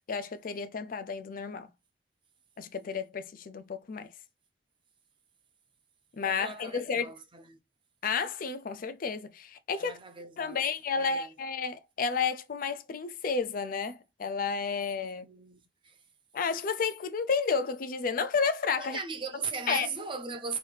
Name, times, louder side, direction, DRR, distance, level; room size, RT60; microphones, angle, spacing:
voice 1, 0.1-1.7 2.6-4.1 6.1-7.1 8.0-10.0 10.4-15.2 16.3-19.0 19.7-19.9, left 5 dB, 50° left, 0.4 m, -31 dB
voice 2, 6.2-7.6 9.8-10.6 11.0-11.3 15.2-16.0 18.8-20.6, right 5 dB, 30° right, 0.6 m, -38 dB
3.1 x 2.7 x 3.2 m
head